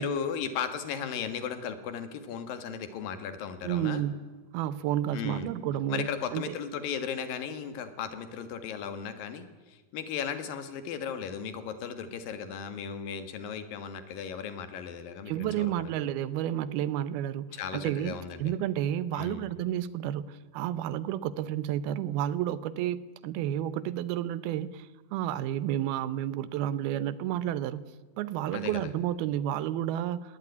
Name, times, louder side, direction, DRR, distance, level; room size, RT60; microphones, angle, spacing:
voice 1, 0.0-4.0 5.1-5.5 5.9-15.7 17.5-18.5 19.1-19.5 28.5-28.8, left 7 dB, 70° left, 10 dB, 3.2 m, -36 dB
voice 2, 3.6-6.6 15.3-18.1 18.4-27.9 28.2-30.4, right 11 dB, 85° right, 17 dB, 2.8 m, -31 dB
20.0 x 17.5 x 9.6 m, 1.3 s
omnidirectional pair, 4.3 m